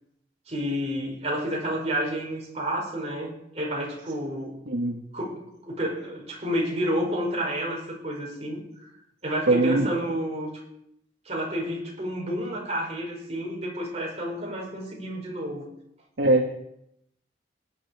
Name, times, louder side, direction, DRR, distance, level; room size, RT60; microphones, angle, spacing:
voice 1, 0.5-4.6 5.1-8.9 9.2-10.5 11.2-15.6, equal, 35° right, -2 dB, 4.9 m, -30 dB
voice 2, 4.7-5.0 9.5-9.9 16.2-16.6, right 2 dB, 80° right, 2 dB, 1.4 m, -22 dB
19.0 x 9.8 x 4.7 m, 0.78 s
head